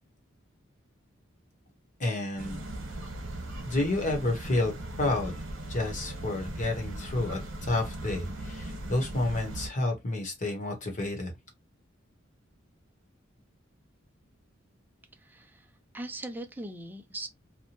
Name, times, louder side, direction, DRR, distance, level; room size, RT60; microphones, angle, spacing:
voice 1, 2.0-2.6 3.6-5.3 5.7-11.3, left 2 dB, 40° left, 1.0 m, -30 dB
sound 1, 2.4-9.7, right 1 dB, 80° right, 1.0 m, -38 dB
voice 2, 15.2-15.7 15.9-17.3, right 1 dB, 10° right, 0.4 m, -40 dB
2.8 x 2.1 x 2.8 m
head